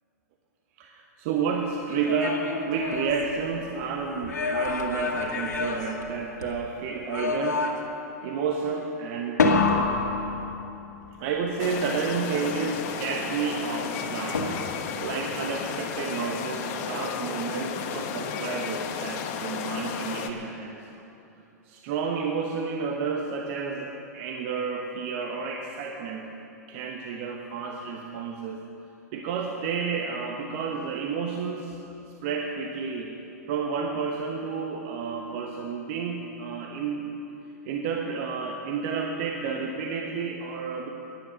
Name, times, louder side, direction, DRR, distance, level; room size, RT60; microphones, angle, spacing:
voice 1, 0.8-7.7 8.2-9.9 11.2-14.5 15.0-20.8 21.7-26.3 26.7-28.6 29.1-33.1 33.5-37.1 37.6-40.9, right 5 dB, 50° right, 2 dB, 1.2 m, -31 dB
sound 1, 1.9-3.8 4.2-6.6 7.1-8.1 9.4-11.0 14.3-15.0, left 4 dB, 85° left, 1.8 m, -28 dB
sound 2, 11.6-20.3, left 7 dB, 50° left, 1.2 m, -33 dB
14.5 x 11.0 x 6.6 m, 2.9 s
hypercardioid pair, 115°, 9 cm